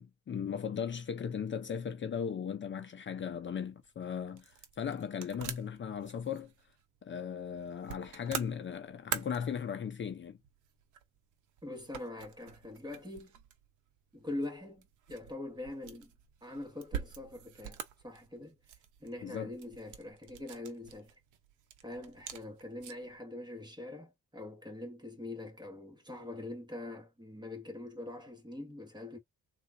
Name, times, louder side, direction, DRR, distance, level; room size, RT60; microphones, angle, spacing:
voice 1, 0.0-6.5 7.0-10.4 19.2-19.5, left 7 dB, 40° left, 0.7 m, -37 dB
sound 1, 3.6-23.2, right 9 dB, 80° right, 0.8 m, -47 dB
voice 2, 11.6-13.3 14.1-16.1 16.4-18.5 19.0-21.1 21.8-29.2, left 2 dB, 15° right, 1.7 m, -43 dB
3.7 x 2.5 x 2.6 m
cardioid pair, 90°, 30 cm